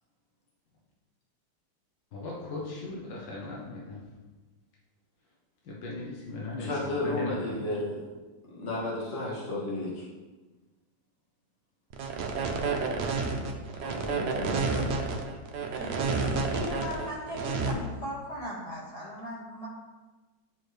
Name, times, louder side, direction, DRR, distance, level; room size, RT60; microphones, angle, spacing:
voice 1, 2.1-4.0 5.6-7.4, left 2 dB, 90° left, -3 dB, 1.7 m, -37 dB
voice 2, 6.6-8.0 8.5-10.0 13.8-15.0, left 2 dB, 40° left, -5 dB, 1.6 m, -33 dB
sound 1, 11.9-17.7, right 4 dB, 70° right, 1.3 m, -30 dB
voice 3, 15.7-19.7, equal, 65° left, -8 dB, 3.2 m, -38 dB
9.9 x 4.6 x 3.3 m, 1.2 s
omnidirectional pair, 1.9 m